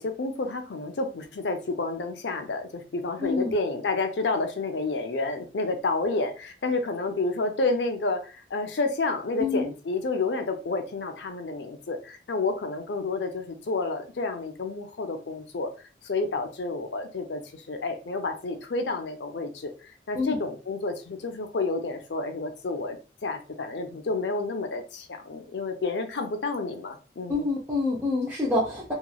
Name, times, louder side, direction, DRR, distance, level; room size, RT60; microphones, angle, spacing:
voice 1, 0.0-15.7 16.0-23.0 23.2-27.5, left 3 dB, 80° left, 7 dB, 0.6 m, -30 dB
voice 2, 3.2-3.5 9.4-9.7 20.2-20.4 27.3-28.9, left 3 dB, 15° right, -5 dB, 0.6 m, -26 dB
2.9 x 2.3 x 2.3 m, 0.34 s
head